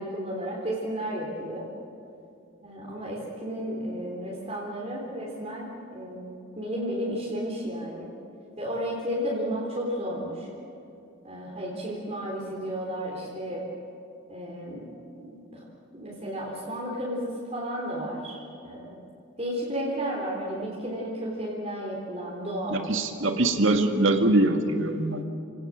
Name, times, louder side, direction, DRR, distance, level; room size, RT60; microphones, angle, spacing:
voice 1, 0.0-1.7 2.6-8.1 8.6-10.5 11.2-13.6 14.3-14.9 15.1-15.6 15.9-18.4 18.6-19.0 19.4-22.9, equal, 30° right, -4 dB, 3.7 m, -33 dB
voice 2, 22.7-25.3, right 2 dB, 65° right, 5 dB, 2.0 m, -23 dB
30.0 x 18.0 x 7.5 m, 2.6 s
head